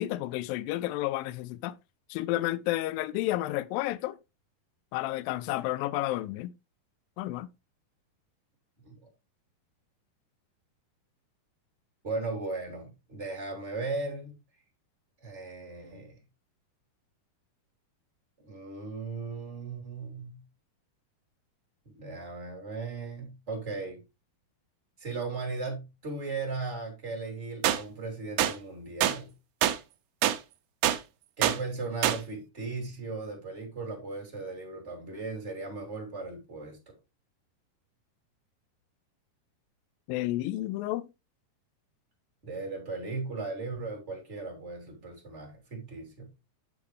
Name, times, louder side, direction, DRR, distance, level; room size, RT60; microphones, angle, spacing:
voice 1, 0.0-1.7 2.1-4.2 4.9-6.5 7.2-7.5 40.1-41.1, left 16 dB, 85° left, 2.1 m, -31 dB
voice 2, 12.0-14.4 15.2-16.2 18.4-20.4 22.0-24.0 25.0-29.3 31.4-36.9 42.4-46.3, right 3 dB, 20° right, 2.4 m, -37 dB
sound 1, 27.6-27.8 28.4-28.5 29.0-29.2 29.6-29.8 30.2-30.4 30.8-31.0 31.4-31.6 32.0-32.2, right 12 dB, 85° right, 1.8 m, -24 dB
8.7 x 6.9 x 3.2 m
omnidirectional pair, 4.6 m